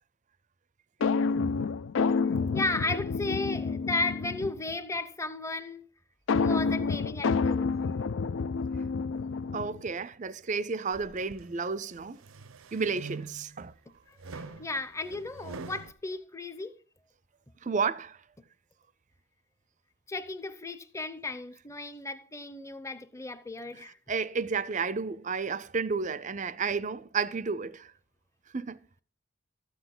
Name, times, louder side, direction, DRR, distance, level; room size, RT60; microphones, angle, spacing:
sound 1, 1.0-4.7 6.3-9.9, left 4 dB, 65° left, 0.4 m, -29 dB
voice 1, 2.2-5.8 6.4-7.7 14.1-16.8 20.1-24.0, left 2 dB, 15° left, 0.7 m, -35 dB
voice 2, 9.5-12.2 12.7-13.7 17.6-18.2 24.1-27.9 28.5-28.8, right 5 dB, 35° right, 0.5 m, -32 dB
sound 2, 10.9-11.5 12.0-13.6 14.2-15.9, right 3 dB, 75° right, 0.7 m, -44 dB
13.5 x 8.0 x 3.8 m
head